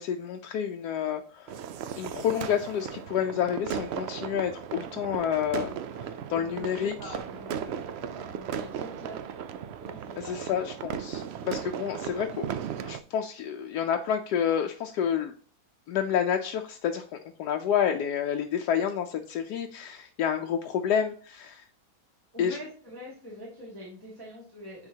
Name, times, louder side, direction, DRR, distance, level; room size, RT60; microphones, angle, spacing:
voice 1, 0.0-1.7 2.0-5.7 6.0-7.1 10.2-12.4 12.8-15.3 15.9-21.7 22.4-22.6, left 8 dB, 85° left, 4 dB, 1.2 m, -29 dB
sound 1, 1.5-13.0, right 8 dB, 85° right, 0.5 m, -36 dB
voice 2, 6.3-9.5 9.8-10.3 22.3-24.9, left 1 dB, 15° right, -4 dB, 2.3 m, -44 dB
9.7 x 4.1 x 2.8 m, 0.43 s
omnidirectional pair, 1.7 m